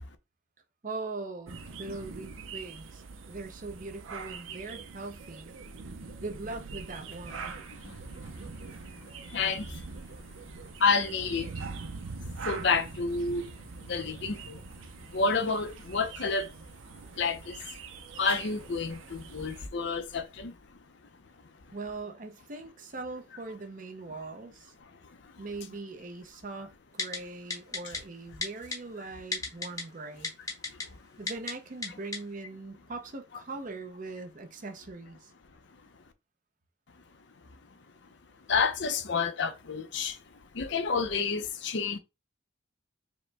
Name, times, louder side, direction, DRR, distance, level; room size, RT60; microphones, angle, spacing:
voice 1, 0.8-5.5 6.2-7.6 21.7-24.7 25.4-30.3 31.2-35.3, right 3 dB, 40° right, 0.6 m, -41 dB
sound 1, 1.5-19.7, right 4 dB, 80° right, 0.6 m, -43 dB
voice 2, 7.8-8.5 9.0-9.8 10.8-11.6 12.4-13.5 13.8-14.6 15.1-16.5 17.2-17.6 18.2-20.5 25.2-25.3 30.7-31.0 38.5-40.2 40.5-42.0, left 4 dB, 60° left, 0.6 m, -30 dB
Typing, 27.0-27.2 27.5-28.0 28.4-28.8 29.3-29.8 30.2-30.8 31.3-31.5 31.8-31.9 32.1-32.2, left 3 dB, 15° left, 0.7 m, -32 dB
5.0 x 2.1 x 3.3 m
head